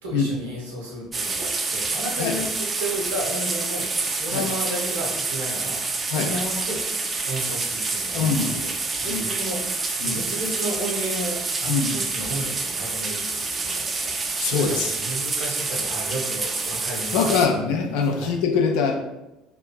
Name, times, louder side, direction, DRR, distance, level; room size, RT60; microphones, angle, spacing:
voice 1, 0.0-6.8 7.2-17.6 18.2-18.3, right 1 dB, 80° right, -3 dB, 0.8 m, -33 dB
sound 1, 1.1-17.5, right 3 dB, 25° right, 0.3 m, -27 dB
voice 2, 8.1-8.7 9.1-9.3 10.0-10.2 11.7-11.9 14.4-15.0 17.1-18.9, left 5 dB, 65° left, 3 dB, 0.4 m, -23 dB
2.9 x 2.4 x 2.2 m, 0.95 s
figure-of-eight pair, 60°, 0 cm